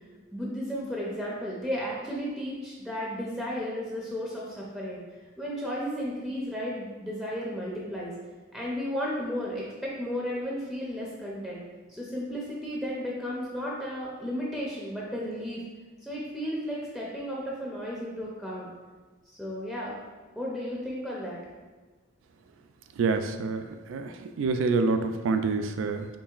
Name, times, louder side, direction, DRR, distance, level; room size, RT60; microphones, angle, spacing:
voice 1, 0.3-5.0 5.4-8.1 8.5-11.6 11.9-15.6 16.0-18.7 19.3-19.9 20.4-21.4, equal, ahead, -5 dB, 0.5 m, -34 dB
voice 2, 23.0-23.6 23.9-26.1, right 4 dB, 70° right, 7 dB, 0.3 m, -27 dB
4.5 x 3.1 x 2.4 m, 1.3 s
head